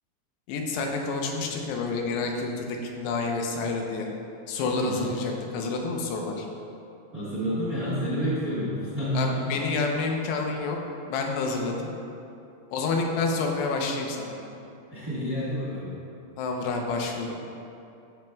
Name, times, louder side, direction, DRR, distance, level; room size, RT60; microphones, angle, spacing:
voice 1, 0.5-4.1 4.5-6.5 9.1-10.8 11.1-11.9 12.7-14.3 16.4-17.3, left 3 dB, 90° left, 1 dB, 3.0 m, -28 dB
voice 2, 7.1-9.5 14.9-16.0, equal, 90° right, -10 dB, 0.7 m, -29 dB
13.0 x 7.3 x 2.3 m, 2.7 s
omnidirectional pair, 4.7 m